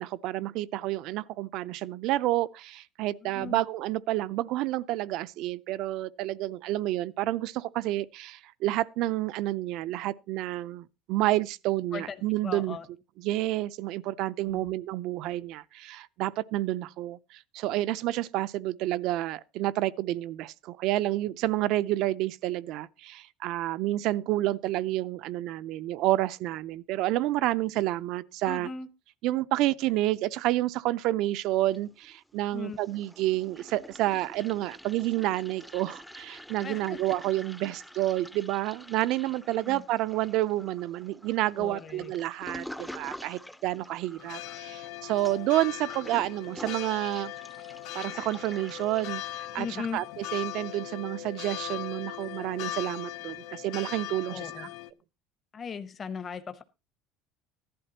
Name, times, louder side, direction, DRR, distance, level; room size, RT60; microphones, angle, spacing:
voice 1, 0.0-12.8 13.2-28.7 29.2-47.3 47.9-49.7 49.9-54.7, right 16 dB, 60° right, 0.6 m, -29 dB
voice 2, 3.2-3.6 11.9-12.8 14.4-14.7 28.5-28.9 32.5-32.8 36.6-37.0 39.6-39.8 41.6-42.1 49.6-50.0 54.3-54.7 55.5-56.6, left 6 dB, 25° left, 0.9 m, -38 dB
Toilet flush, 31.5-32.4 32.6-49.1, equal, ahead, 0.6 m, -47 dB
sound 1, 44.2-54.9, left 14 dB, 70° left, 0.9 m, -39 dB
15.5 x 11.0 x 2.9 m
cardioid pair, 145°, 0 cm